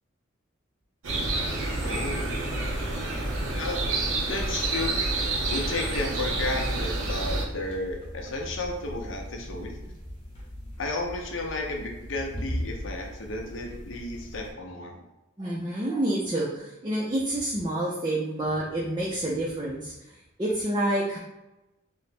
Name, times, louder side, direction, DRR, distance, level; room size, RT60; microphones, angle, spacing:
sound 1, 1.0-7.4, right 2 dB, 80° right, 0.8 m, -28 dB
sound 2, 1.7-14.5, equal, 25° left, 0.9 m, -40 dB
voice 1, 1.8-2.2 3.6-3.9 4.3-4.9 5.5-9.8 10.8-15.0, left 2 dB, 70° left, 2 dB, 0.6 m, -33 dB
voice 2, 15.4-19.9 20.4-21.2, right 1 dB, 20° right, -5 dB, 0.4 m, -28 dB
3.2 x 2.0 x 4.1 m, 0.98 s
head